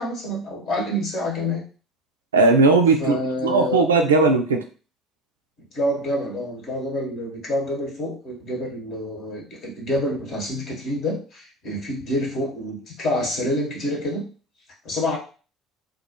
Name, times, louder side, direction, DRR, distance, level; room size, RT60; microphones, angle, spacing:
voice 1, 0.0-1.6 3.0-3.9 5.7-14.3 14.8-15.2, left 1 dB, 50° left, -2 dB, 0.9 m, -27 dB
voice 2, 2.3-3.2 3.4-4.6, right 3 dB, 80° right, 4 dB, 0.3 m, -17 dB
2.3 x 2.1 x 2.7 m, 0.37 s
figure-of-eight pair, 55°, 0 cm